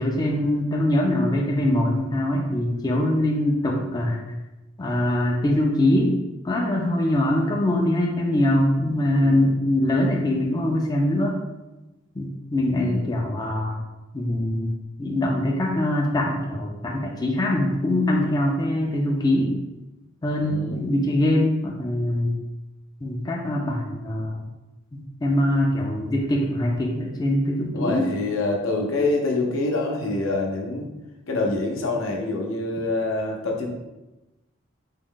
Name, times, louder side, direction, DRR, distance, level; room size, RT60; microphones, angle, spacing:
voice 1, 0.0-4.2 4.8-6.1 6.4-11.4 12.2-13.8 14.1-14.7 15.0-19.5 20.2-22.4 23.0-24.4 24.9-28.1, left 1 dB, 20° left, -1 dB, 0.3 m, -23 dB
voice 2, 9.2-9.5 12.8-13.1 20.4-20.8 27.7-30.9 31.3-33.8, left 2 dB, 75° left, 0 dB, 0.6 m, -26 dB
3.5 x 2.1 x 3.7 m, 1.0 s
head